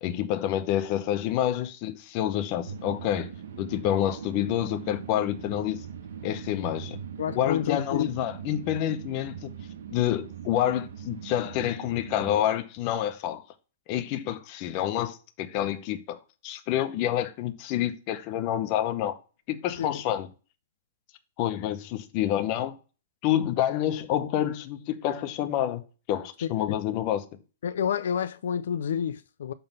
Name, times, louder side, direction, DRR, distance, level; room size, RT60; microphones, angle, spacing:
voice 1, 0.0-3.3 3.6-5.8 6.2-7.0 7.3-9.5 9.9-13.4 13.9-16.2 16.4-19.2 19.5-20.3 21.4-22.8 23.2-25.8 26.1-27.3, left 11 dB, 25° left, 0.7 m, -28 dB
sound 1, 2.6-12.4, right 8 dB, 65° right, 1.2 m, -41 dB
voice 2, 7.2-8.1 19.8-19.9 26.4-26.8 27.6-29.5, left 8 dB, 70° left, 0.4 m, -29 dB
7.0 x 3.8 x 5.3 m
hypercardioid pair, 175°, 0 cm